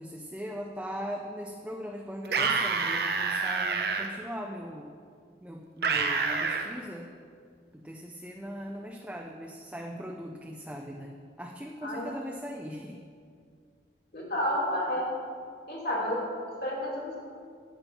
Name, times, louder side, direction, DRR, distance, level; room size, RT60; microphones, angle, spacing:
voice 1, 0.0-4.9 5.4-7.1 7.7-13.0, equal, 5° right, 1 dB, 0.5 m, -40 dB
sound 1, 2.3-4.1 5.8-6.7, right 4 dB, 60° right, 0.8 m, -27 dB
voice 2, 11.8-12.1 14.1-15.1 15.7-17.2, equal, 60° left, -4 dB, 2.8 m, -31 dB
10.0 x 8.7 x 5.3 m, 2.2 s
head